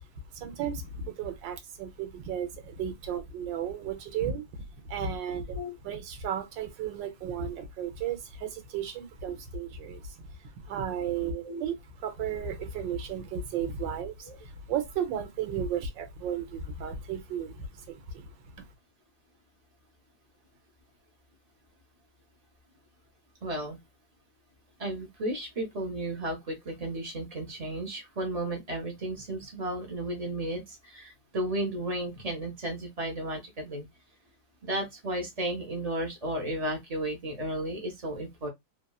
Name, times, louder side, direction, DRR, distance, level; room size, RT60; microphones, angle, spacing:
voice 1, 0.3-18.7, right 7 dB, 80° right, 1.4 m, -34 dB
voice 2, 23.4-23.8 24.8-33.9 34.6-38.5, right 1 dB, 35° right, 0.6 m, -34 dB
3.3 x 2.3 x 2.3 m
omnidirectional pair, 2.0 m